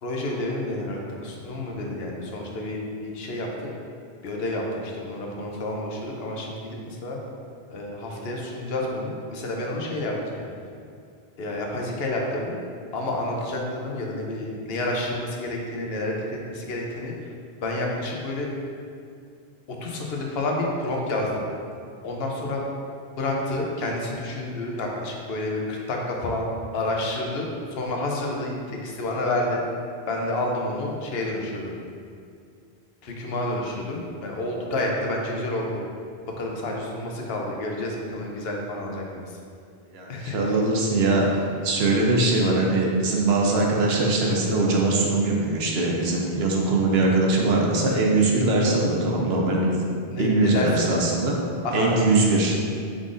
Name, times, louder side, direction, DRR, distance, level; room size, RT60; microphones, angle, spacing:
voice 1, 0.0-3.7 4.2-7.2 7.7-10.4 11.4-12.5 12.9-17.1 17.6-18.5 19.7-21.4 22.0-22.6 23.1-29.6 30.1-31.8 33.0-35.8 36.4-39.2 40.1-40.6 50.1-50.9 51.6-52.0, left 1 dB, 75° left, -1 dB, 0.9 m, -29 dB
voice 2, 39.9-41.3 41.6-49.7 50.2-51.4 51.7-52.5, right 2 dB, 80° right, -1 dB, 0.9 m, -21 dB
4.9 x 3.8 x 2.5 m, 2.3 s
omnidirectional pair, 1.1 m